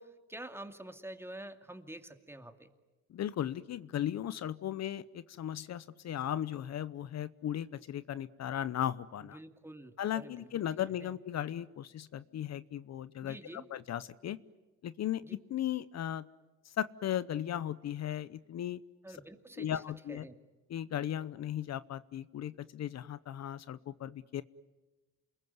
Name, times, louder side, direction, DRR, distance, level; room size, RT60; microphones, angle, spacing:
voice 1, 0.0-2.7 9.2-10.5 11.0-11.1 13.2-13.7 15.2-15.3 19.0-19.8 20.1-20.3, right 1 dB, 10° right, 7 dB, 2.4 m, -48 dB
voice 2, 3.1-9.4 10.0-14.4 14.8-15.2 15.5-16.3 16.6-18.8 19.1-19.2 19.6-20.2 20.7-24.4, left 11 dB, 60° left, 16 dB, 0.8 m, -36 dB
28.5 x 21.5 x 9.5 m, 1.2 s
cardioid pair, 90°, 30 cm